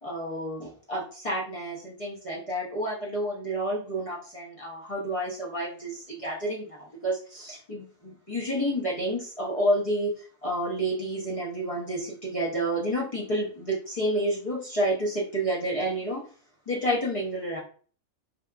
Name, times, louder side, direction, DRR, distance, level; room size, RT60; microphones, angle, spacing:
voice 1, 0.0-16.2 16.7-17.6, right 1 dB, 40° left, -4 dB, 0.5 m, -30 dB
2.7 x 2.4 x 2.2 m, 0.43 s
omnidirectional pair, 1.4 m